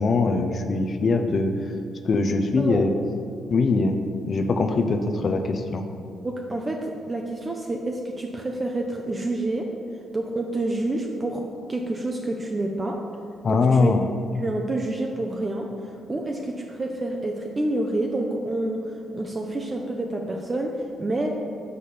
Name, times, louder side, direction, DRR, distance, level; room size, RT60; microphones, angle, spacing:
voice 1, 0.0-1.6 2.0-2.9 3.5-4.0 4.2-5.9 13.4-14.0, left 3 dB, 45° left, 6 dB, 0.5 m, -22 dB
voice 2, 6.2-9.7 10.1-11.4 11.7-13.0 13.5-13.9 14.4-15.7 16.1-20.7 21.0-21.3, right 2 dB, 25° right, 1 dB, 0.6 m, -28 dB
6.6 x 4.2 x 5.1 m, 2.3 s
cardioid pair, 90°, 0 cm